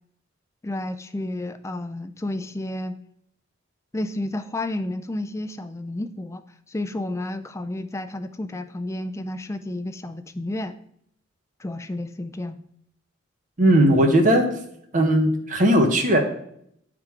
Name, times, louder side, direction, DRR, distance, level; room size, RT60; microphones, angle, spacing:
voice 1, 0.6-3.0 3.9-6.4 6.7-10.8 11.6-12.6, left 1 dB, 15° left, 9 dB, 0.3 m, -31 dB
voice 2, 13.6-14.4 14.9-16.2, right 1 dB, 40° right, 4 dB, 1.0 m, -17 dB
8.9 x 3.7 x 4.5 m, 0.70 s
head